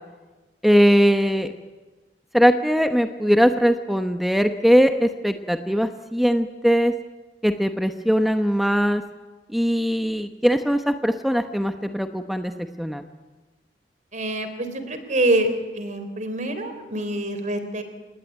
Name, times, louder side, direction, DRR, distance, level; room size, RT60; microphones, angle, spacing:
voice 1, 0.6-1.5 2.3-6.9 7.4-9.0 9.5-12.5 12.8-13.0, equal, ahead, 7 dB, 0.9 m, -20 dB
voice 2, 14.1-17.8, right 1 dB, 45° right, 9 dB, 3.4 m, -25 dB
28.0 x 19.5 x 9.4 m, 1.3 s
head